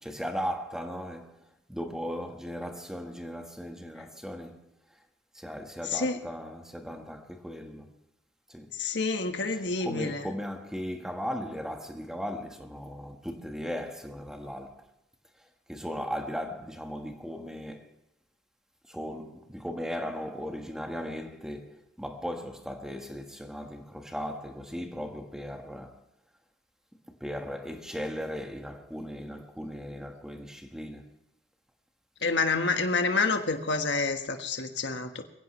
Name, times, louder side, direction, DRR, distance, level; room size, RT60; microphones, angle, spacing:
voice 1, 0.0-4.6 5.3-7.9 8.5-8.7 9.8-14.9 15.4-17.9 18.9-26.0 27.1-31.1, equal, 5° right, 1.4 m, -37 dB
voice 2, 5.8-6.2 8.7-10.3 32.2-35.2, left 3 dB, 65° left, 1.5 m, -28 dB
22.5 x 16.0 x 3.2 m
head